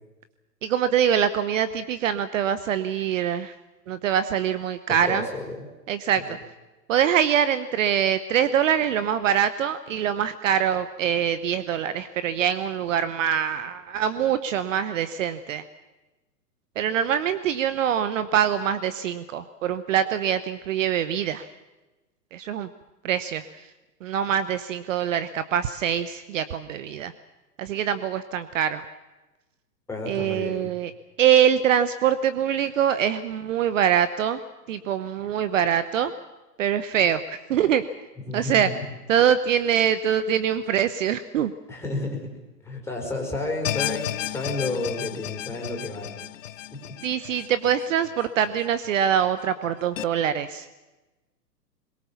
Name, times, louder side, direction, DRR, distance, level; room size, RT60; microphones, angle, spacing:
voice 1, 0.6-3.5 3.9-5.2 5.9-6.2 6.9-15.6 16.8-21.5 22.3-22.7 23.0-23.4 24.0-27.1 27.6-28.8 30.1-30.9 31.2-34.4 34.7-36.1 36.6-37.8 38.3-38.7 39.1-41.5 47.0-50.7, right 9 dB, 50° right, 13 dB, 1.0 m, -24 dB
voice 2, 4.9-5.6 6.3-6.4 29.9-30.7 38.3-38.8 41.7-42.3 42.6-46.2 46.7-47.0, left 2 dB, 5° left, 0 dB, 4.7 m, -31 dB
sound 1, 43.6-48.9 49.2-49.3 50.0-50.1, left 13 dB, 50° left, 0.8 m, -33 dB
22.5 x 22.0 x 7.2 m, 1.1 s
hypercardioid pair, 130°, 49 cm